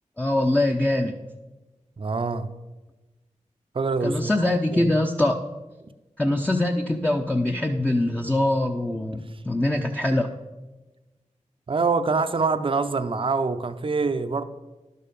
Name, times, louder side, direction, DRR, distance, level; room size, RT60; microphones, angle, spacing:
voice 1, 0.2-1.2 4.0-5.4 6.2-10.3, left 1 dB, 10° left, 2 dB, 0.6 m, -23 dB
voice 2, 2.0-2.5 3.7-4.3 4.7-4.9 11.7-14.4, right 4 dB, 40° right, 10 dB, 0.6 m, -25 dB
11.0 x 6.7 x 5.2 m, 1.1 s
wide cardioid pair, 65°, 13 cm